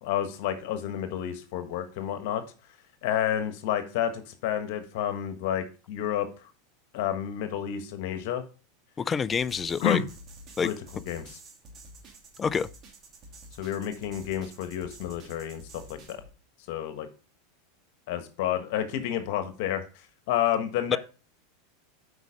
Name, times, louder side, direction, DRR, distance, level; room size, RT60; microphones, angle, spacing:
voice 1, 0.0-2.4 3.0-6.5 6.9-8.4 9.8-10.0 10.6-11.4 13.6-16.2 16.7-17.1 18.1-21.0, left 10 dB, 65° left, 1.4 m, -30 dB
voice 2, 9.0-10.0 10.6-10.7 12.4-12.7 20.9-21.0, left 6 dB, 20° left, 0.4 m, -26 dB
sound 1, 9.3-16.3, right 1 dB, 35° right, 2.7 m, -49 dB
8.1 x 5.2 x 5.2 m
supercardioid pair, 120°, 0 cm